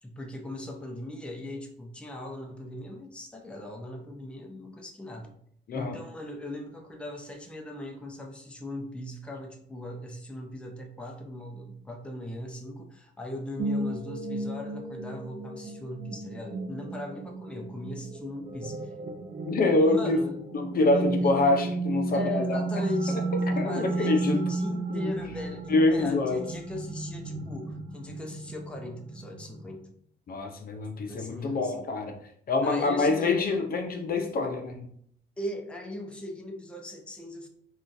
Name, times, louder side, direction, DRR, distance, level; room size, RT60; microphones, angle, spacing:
voice 1, 0.0-5.3 5.7-18.9 19.8-20.5 20.9-21.3 22.1-29.9 31.0-31.8 32.6-33.4 35.4-37.5, left 1 dB, 5° left, 1 dB, 0.6 m, -39 dB
sound 1, 13.6-29.8, right 2 dB, 45° right, 0.4 m, -33 dB
voice 2, 19.5-20.2 20.5-22.6 23.6-24.4 24.9-25.1 25.7-26.4 30.3-32.1 32.5-34.9, left 2 dB, 50° left, 4 dB, 0.5 m, -25 dB
3.6 x 2.4 x 2.6 m, 0.65 s
cardioid pair, 90°, 20 cm